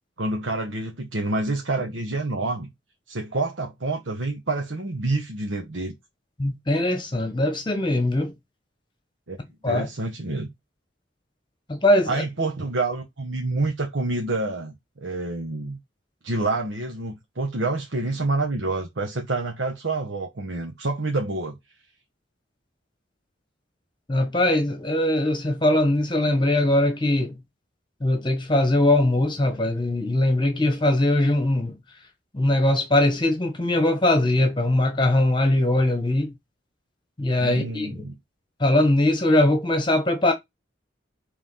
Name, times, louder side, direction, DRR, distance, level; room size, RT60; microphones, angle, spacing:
voice 1, 0.2-2.7 3.1-5.9 9.3-9.4 9.7-10.5 12.0-14.7 15.0-15.8 16.2-21.6 37.4-38.2, right 2 dB, 75° right, 1.2 m, -27 dB
voice 2, 6.4-8.3 9.6-9.9 11.7-12.2 24.1-27.4 28.0-31.7 32.3-36.3 37.2-37.9 38.6-40.3, left 1 dB, 25° left, 1.1 m, -21 dB
5.6 x 3.5 x 5.7 m
head